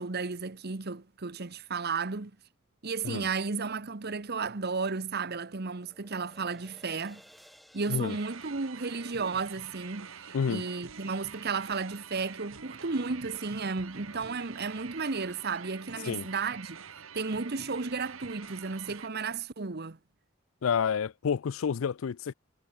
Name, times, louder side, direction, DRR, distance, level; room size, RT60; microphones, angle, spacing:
voice 1, 0.0-2.3 2.8-7.2 7.7-16.8 17.1-20.0, right 4 dB, 50° right, 1.1 m, -33 dB
sound 1, 5.1-10.9, equal, ahead, 3.0 m, -60 dB
sound 2, 8.1-19.1, right 7 dB, 85° right, 1.7 m, -47 dB
voice 2, 10.3-10.7 16.1-16.3 20.6-22.3, left 6 dB, 80° left, 0.4 m, -29 dB
head